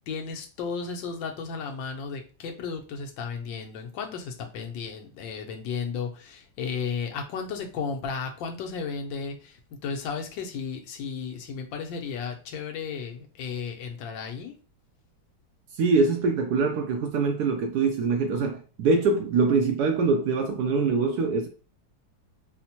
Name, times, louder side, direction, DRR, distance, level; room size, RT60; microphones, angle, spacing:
voice 1, 0.1-9.6 9.8-14.5, left 5 dB, 90° left, 1.4 m, -34 dB
voice 2, 15.8-21.5, right 4 dB, 70° right, 1.0 m, -24 dB
4.3 x 2.1 x 2.8 m
omnidirectional pair, 2.0 m